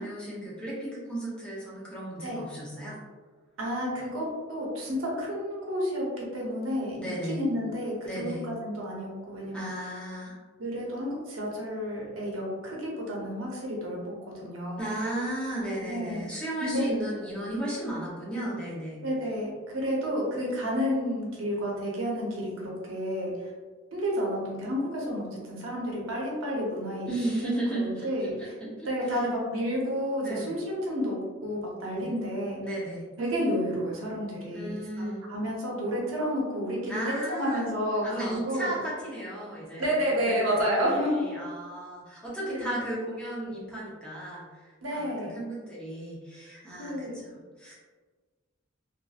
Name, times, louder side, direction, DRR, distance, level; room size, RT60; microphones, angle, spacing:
voice 1, 0.0-3.0 7.0-7.4 8.0-8.4 9.5-10.4 14.8-19.0 27.1-28.1 28.4-29.2 30.2-30.5 31.9-32.1 32.6-33.1 34.5-35.2 36.9-37.7 38.0-39.9 40.2-44.7 44.9-47.7, right 1 dB, 5° left, -7 dB, 0.7 m, -35 dB
voice 2, 3.6-9.7 10.6-14.0 14.3-14.9 15.8-16.3 16.6-16.8 19.0-23.5 23.9-27.1 27.7-28.5 28.8-32.6 33.2-34.7 35.3-37.0 37.3-38.8 39.8-41.2 42.5-42.9 44.8-45.4 46.8-47.2, equal, 90° right, -3 dB, 0.8 m, -30 dB
2.8 x 2.5 x 2.3 m, 1.4 s
head